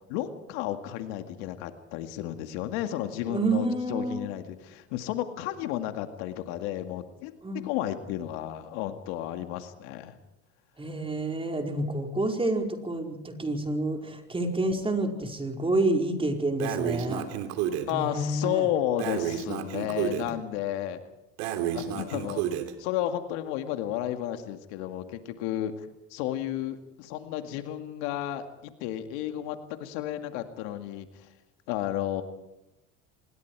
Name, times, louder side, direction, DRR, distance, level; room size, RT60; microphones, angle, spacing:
voice 1, 0.1-7.4 7.6-10.2 17.9-21.0 21.7-22.4 22.8-31.3 31.7-32.2, left 12 dB, 75° left, 7 dB, 2.2 m, -32 dB
voice 2, 3.3-4.2 7.4-7.7 10.8-17.2 17.9-18.7 19.8-20.4, right 2 dB, 15° right, 3 dB, 4.9 m, -29 dB
Breathing, 16.6-17.9 19.0-20.3 21.4-22.7, right 10 dB, 75° right, 3.1 m, -31 dB
26.0 x 22.0 x 4.8 m, 0.89 s
supercardioid pair, 85°, 34 cm